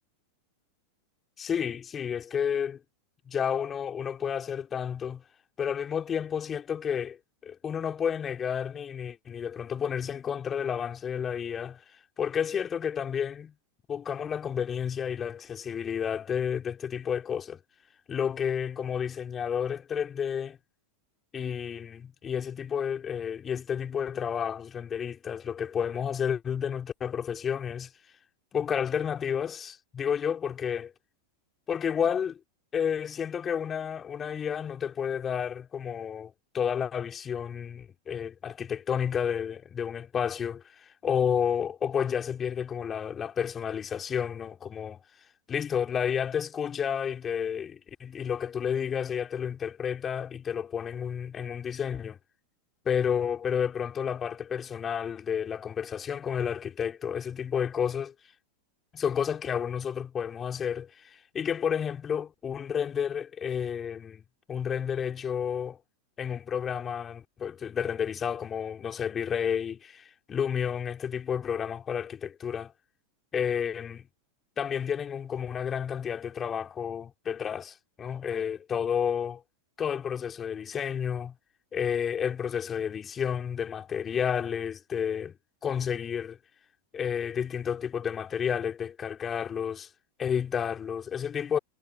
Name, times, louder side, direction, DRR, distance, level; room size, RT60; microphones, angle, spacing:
voice 1, 1.4-2.8 3.3-5.2 5.6-7.2 7.4-11.8 12.2-13.5 13.9-17.6 18.1-20.6 21.3-27.9 28.5-30.9 31.7-32.4 32.7-45.0 45.5-52.2 52.9-58.1 58.9-64.2 64.5-65.8 66.2-72.7 73.3-74.1 74.6-79.4 79.8-81.3 81.7-85.4 85.6-86.4 86.9-89.9 90.2-91.6, left 8 dB, 20° left, 3.8 m, -31 dB
figure-of-eight pair, 90°, 0 cm